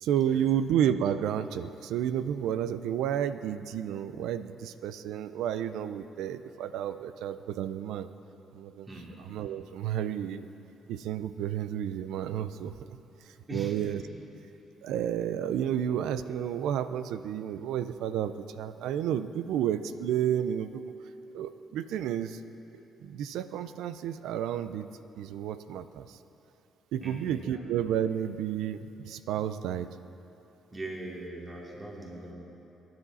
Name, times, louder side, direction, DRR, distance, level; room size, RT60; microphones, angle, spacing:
voice 1, 0.0-8.1 8.5-8.9 9.2-10.5 10.9-12.7 13.3-14.0 14.8-20.9 21.3-22.4 23.0-24.9 25.2-26.2 26.9-29.9, right 10 dB, 90° right, 12 dB, 0.6 m, -31 dB
voice 2, 13.5-14.1 27.0-27.6 30.7-32.3, right 1 dB, 25° right, -3 dB, 2.8 m, -40 dB
24.5 x 11.0 x 4.1 m, 2.9 s
cardioid pair, 90°, 0 cm